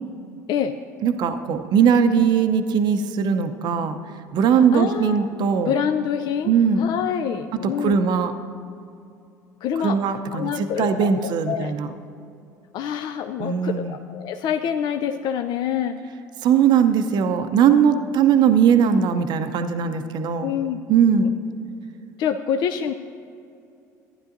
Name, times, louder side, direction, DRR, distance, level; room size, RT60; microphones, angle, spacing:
voice 1, 1.0-4.0 4.3-5.7 6.4-6.9 7.6-8.3 9.8-11.9 13.4-13.9 16.4-20.5 20.9-21.3, right 7 dB, 50° right, 8 dB, 0.6 m, -20 dB
voice 2, 4.7-5.3 5.7-6.5 6.8-8.0 9.6-10.0 10.3-11.7 12.7-16.0 20.4-20.8 22.2-22.9, left 8 dB, 50° left, 8 dB, 0.4 m, -26 dB
15.0 x 10.0 x 2.6 m, 2.6 s
hypercardioid pair, 65°, 9 cm